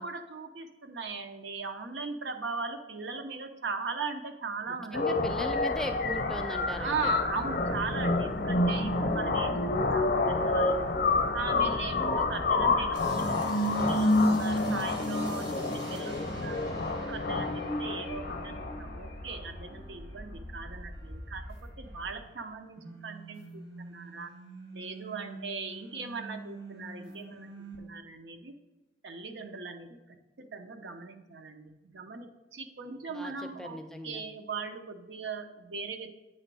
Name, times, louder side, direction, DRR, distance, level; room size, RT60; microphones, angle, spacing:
voice 1, 0.0-5.2 6.8-10.9 11.3-16.7 17.0-24.3 24.7-28.6 29.0-30.0 30.4-36.1, right 4 dB, 80° right, 7 dB, 0.7 m, -39 dB
voice 2, 4.7-6.9 33.1-33.3 33.6-34.2, equal, 5° left, 5 dB, 0.4 m, -38 dB
sound 1, 4.9-18.9, left 2 dB, 55° left, 0.6 m, -28 dB
sound 2, 5.2-13.1, equal, 45° right, 0.7 m, -44 dB
sound 3, 12.9-22.5 22.7-27.8, right 1 dB, 65° right, 1.5 m, -45 dB
8.6 x 3.0 x 6.1 m, 1.0 s
head